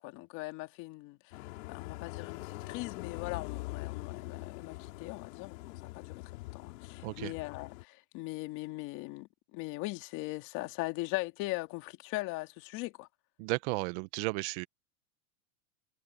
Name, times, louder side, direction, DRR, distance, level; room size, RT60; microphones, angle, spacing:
voice 1, 0.0-1.4 1.7-6.2 6.5-13.1, left 21 dB, 40° left, 2.6 m, -40 dB
sound 1, 1.3-7.8, left 21 dB, 60° left, 3.8 m, -43 dB
voice 2, 7.0-7.3 13.4-14.7, right 22 dB, 50° right, 1.1 m, -34 dB
supercardioid pair, 150°, 44 cm